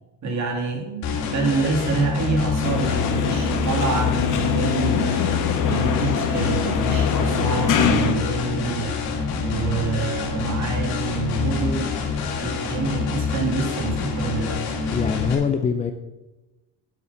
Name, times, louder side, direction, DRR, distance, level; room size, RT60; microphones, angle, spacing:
voice 1, 0.2-9.2 9.4-12.0 12.4-14.8, right 4 dB, 45° right, 2 dB, 2.7 m, -27 dB
sound 1, 1.0-15.4, left 5 dB, 70° left, 2.6 m, -26 dB
sound 2, 2.6-8.2, left 7 dB, 50° left, 1.2 m, -23 dB
voice 2, 14.9-15.9, left 6 dB, 20° left, 6 dB, 0.4 m, -23 dB
8.4 x 7.7 x 5.6 m, 1.1 s
cardioid pair, 130°, 39 cm